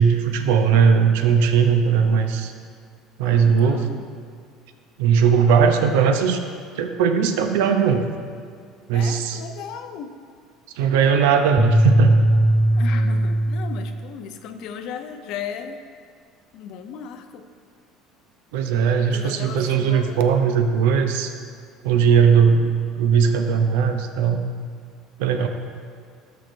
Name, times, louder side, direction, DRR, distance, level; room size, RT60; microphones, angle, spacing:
voice 1, 0.0-2.5 3.2-3.8 5.0-6.4 6.8-8.1 8.9-9.4 10.8-12.3 18.5-21.3 21.8-22.6 23.0-24.4 25.2-25.5, right 6 dB, 85° right, 6 dB, 0.6 m, -18 dB
voice 2, 3.2-4.1 8.9-10.2 12.7-15.8 16.5-17.5 19.1-20.3 22.5-23.0, left 7 dB, 65° left, 7 dB, 0.6 m, -36 dB
sound 1, 11.6-14.1, right 1 dB, 10° left, 0.4 m, -18 dB
13.0 x 6.5 x 2.6 m, 2.2 s
supercardioid pair, 90°, 0 cm